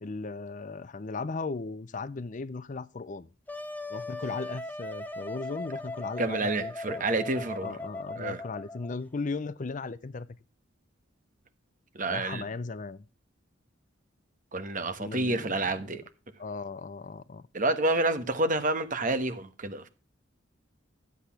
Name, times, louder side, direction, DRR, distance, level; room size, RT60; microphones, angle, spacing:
voice 1, 0.0-3.3 3.9-7.1 7.6-10.3 12.1-13.1 15.0-16.0 16.4-17.4, left 3 dB, 40° left, 0.5 m, -37 dB
Wind instrument woodwind instrument, 3.5-9.0, left 2 dB, 10° left, 0.9 m, -39 dB
voice 2, 6.2-7.7 8.2-8.4 11.9-12.4 14.5-16.0 17.5-19.9, right 2 dB, 40° right, 1.3 m, -29 dB
12.5 x 8.2 x 5.8 m
head